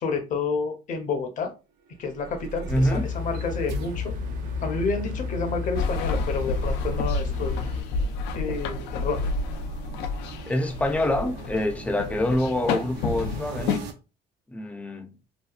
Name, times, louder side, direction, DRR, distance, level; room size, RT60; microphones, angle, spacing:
voice 1, 0.0-1.5 2.0-4.1 4.6-7.7 8.3-9.2, left 4 dB, 50° left, 0.7 m, -29 dB
sound 1, 1.9-13.9, right 1 dB, 85° right, 0.6 m, -40 dB
voice 2, 2.7-3.0 10.5-13.8 14.5-15.1, left 1 dB, 10° left, 0.4 m, -26 dB
sound 2, 2.7-7.8, left 5 dB, 50° right, 0.7 m, -32 dB
sound 3, 5.7-13.8, left 3 dB, 90° left, 0.4 m, -30 dB
2.8 x 2.2 x 2.3 m
cardioid pair, 110°, 17 cm